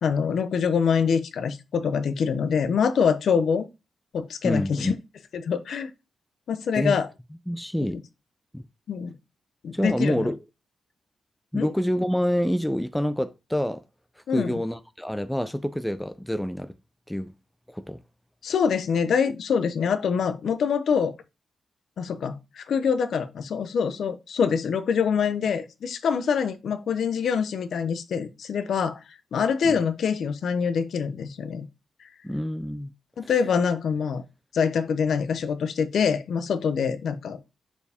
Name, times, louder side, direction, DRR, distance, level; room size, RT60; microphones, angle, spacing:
voice 1, 0.0-3.7 4.1-4.9 5.3-5.9 6.5-7.1 8.9-9.1 9.6-10.2 11.5-11.7 14.3-14.6 18.4-21.1 22.0-29.0 29.3-31.7 33.2-34.2 34.5-37.4, left 6 dB, 60° left, 0.7 m, -25 dB
voice 2, 4.4-4.9 6.7-7.0 7.5-8.0 8.5-8.6 9.7-10.4 11.5-13.8 14.3-16.8 17.1-17.3 17.7-18.0 29.6-29.8 32.2-32.9 33.2-33.3, equal, 5° left, 0.3 m, -27 dB
6.8 x 4.6 x 3.5 m
wide cardioid pair, 170°, 0 cm